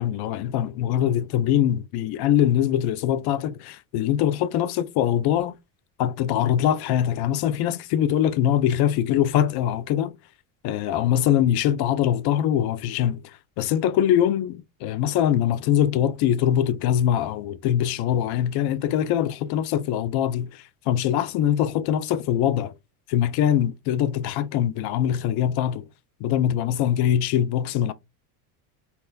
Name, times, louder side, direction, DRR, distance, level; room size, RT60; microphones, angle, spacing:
voice 1, 0.0-5.6 6.0-10.1 10.6-22.7 23.1-25.9 26.2-27.9, left 10 dB, 50° left, 0.5 m, -23 dB
4.2 x 2.1 x 2.2 m
supercardioid pair, 100°, 50 cm